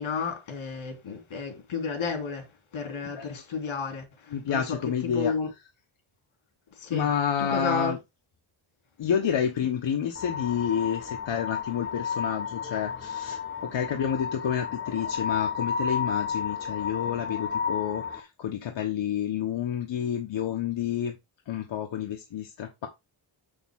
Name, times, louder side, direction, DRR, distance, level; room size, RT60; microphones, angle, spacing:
voice 1, 0.0-2.5 2.7-4.8 5.0-5.5 6.8-7.1 7.4-7.9, left 5 dB, 85° left, 3.3 m, -32 dB
voice 2, 4.3-5.3 6.9-8.0 9.0-21.2 21.5-22.9, left 8 dB, 70° left, 1.3 m, -29 dB
sound 1, 10.2-18.2, left 6 dB, 25° left, 1.2 m, -32 dB
7.3 x 7.0 x 3.7 m
wide cardioid pair, 175°, 47 cm